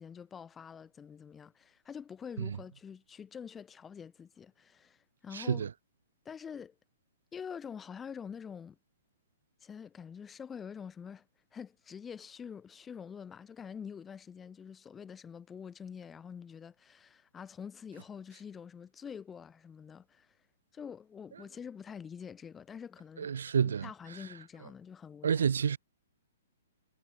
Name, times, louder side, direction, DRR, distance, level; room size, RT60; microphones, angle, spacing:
voice 1, 0.0-5.7 6.2-6.7 7.3-8.8 9.6-11.3 11.5-20.3 20.7-23.3 23.6-25.5, left 7 dB, 10° left, 1.6 m, -46 dB
voice 2, 5.3-5.7 23.2-23.9 25.2-25.8, right 7 dB, 75° right, 0.7 m, -29 dB
hypercardioid pair, 180°, 0 cm